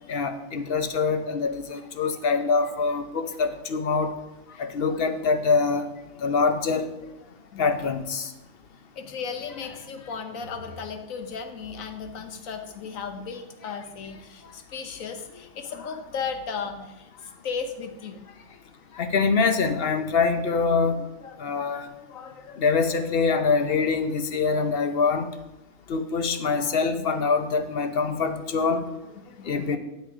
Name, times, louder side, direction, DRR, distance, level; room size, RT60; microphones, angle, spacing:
voice 1, 0.1-4.1 4.6-5.9 6.2-6.9 7.6-8.3 19.0-21.0 21.4-21.9 22.6-25.3 25.9-28.8 29.5-29.8, left 4 dB, 50° left, 8 dB, 0.8 m, -24 dB
voice 2, 4.5-5.0 7.5-7.7 9.0-18.6 18.9-19.0 20.9-21.4 21.7-22.6 26.4-26.6 27.0-27.1 28.3-28.4 29.2-29.8, left 5 dB, 80° left, 7 dB, 1.4 m, -36 dB
9.8 x 6.4 x 4.8 m, 0.96 s
omnidirectional pair, 1.4 m